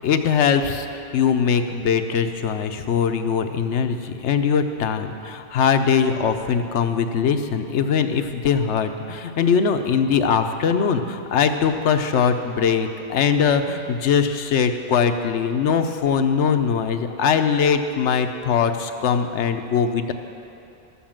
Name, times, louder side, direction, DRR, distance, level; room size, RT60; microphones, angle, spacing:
voice 1, 0.0-20.1, left 6 dB, 80° left, 8 dB, 1.0 m, -21 dB
12.5 x 7.1 x 7.4 m, 2.7 s
omnidirectional pair, 1.2 m